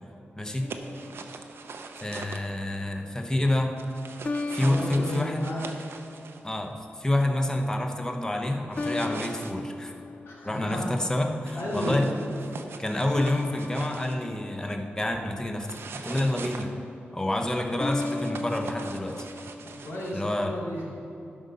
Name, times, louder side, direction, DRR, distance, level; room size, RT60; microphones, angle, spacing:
voice 1, 0.4-0.7 2.0-3.8 4.5-5.4 6.4-9.9 10.4-12.1 12.8-15.7 16.0-16.7 17.1-19.3 20.1-20.5, left 1 dB, 15° left, 4 dB, 0.8 m, -28 dB
sound 1, 0.6-1.9 4.2-6.7 8.8-11.3 13.2-15.7 17.8-20.1, left 2 dB, 35° left, 0.4 m, -37 dB
sound 2, 0.7-2.4 3.8-6.4 8.7-9.5 11.5-14.3 15.6-16.7 17.9-20.2, right 4 dB, 80° right, 0.6 m, -42 dB
voice 2, 4.6-5.8 10.2-10.9 11.5-12.2 19.6-20.8, equal, 85° left, -5 dB, 2.6 m, -33 dB
12.0 x 5.5 x 5.4 m, 2.7 s
wide cardioid pair, 105°, 4 cm